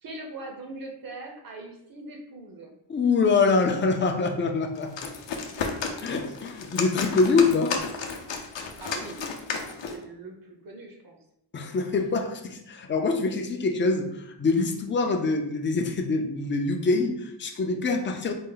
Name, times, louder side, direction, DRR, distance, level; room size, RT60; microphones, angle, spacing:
voice 1, 0.0-2.8 5.3-5.8 8.8-9.3 9.9-11.2 15.0-15.4, right 2 dB, 45° right, 2 dB, 0.8 m, -41 dB
voice 2, 2.9-5.1 5.6-7.8 11.5-18.3, left 4 dB, 25° left, 3 dB, 0.4 m, -25 dB
sound 1, 4.7-10.0, left 5 dB, 65° left, 0.7 m, -33 dB
4.2 x 2.0 x 3.8 m, 0.79 s
wide cardioid pair, 115°, 48 cm